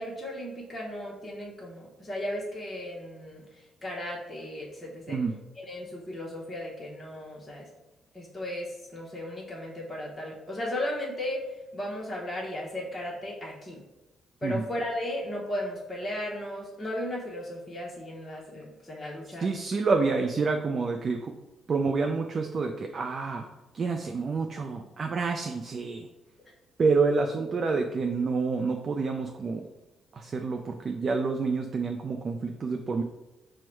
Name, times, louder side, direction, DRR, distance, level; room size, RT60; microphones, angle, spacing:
voice 1, 0.0-3.4 3.8-5.2 5.6-7.6 8.1-11.4 11.7-13.8 14.4-19.5, left 1 dB, 20° left, -5 dB, 0.9 m, -35 dB
voice 2, 19.4-21.3 21.7-23.5 23.7-26.1 26.8-29.6 30.1-33.0, right 4 dB, 45° right, 3 dB, 0.3 m, -28 dB
4.5 x 2.1 x 4.5 m, 1.0 s
cardioid pair, 90°, 0 cm